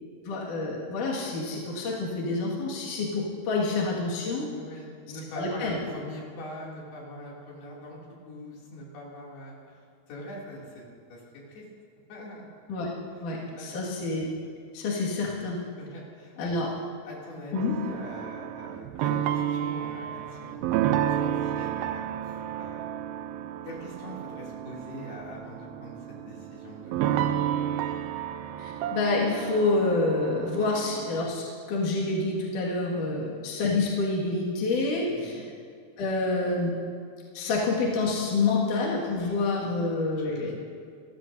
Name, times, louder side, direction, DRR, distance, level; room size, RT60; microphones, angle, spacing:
voice 1, 0.2-4.5 5.3-5.8 12.7-12.9 13.2-14.3 14.7-15.6 16.4-16.7 17.5-17.8 28.6-35.4 36.0-36.7 37.3-40.6, left 3 dB, 55° left, -5 dB, 3.4 m, -28 dB
voice 2, 4.5-8.0 8.3-9.8 10.1-10.8 11.1-11.2 11.5-11.6 12.1-12.4 13.3-13.8 14.6-14.7 15.8-16.8 17.0-22.9 23.6-26.0 26.2-27.4 33.0-33.2 35.1-35.4 40.2-40.6, left 1 dB, 80° left, -4 dB, 4.9 m, -43 dB
sound 1, 17.5-31.2, right 10 dB, 80° right, 2.3 m, -31 dB
29.0 x 15.0 x 2.7 m, 2.3 s
omnidirectional pair, 4.5 m